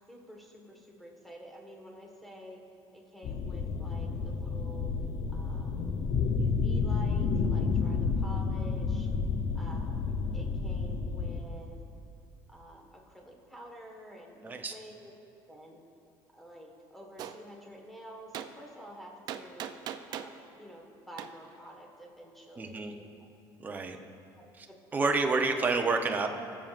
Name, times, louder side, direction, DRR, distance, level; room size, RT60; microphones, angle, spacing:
voice 1, 0.1-2.6 2.9-4.9 5.3-6.0 6.4-9.1 9.5-11.8 12.5-15.1 15.5-15.8 16.3-19.7 20.1-23.0 24.4-24.8, equal, ahead, 0 dB, 1.4 m, -49 dB
sound 1, 3.2-11.4, left 5 dB, 45° left, 0.6 m, -30 dB
Gunshot gunfire, 17.2-17.4 18.3-18.5 19.3-20.4 21.2-21.3, right 10 dB, 50° right, 0.4 m, -38 dB
voice 2, 22.6-22.9 23.6-24.0 24.6-24.7 24.9-26.3, right 3 dB, 20° right, 4 dB, 0.7 m, -29 dB
21.5 x 7.4 x 2.5 m, 2.5 s
cardioid pair, 130°, 9 cm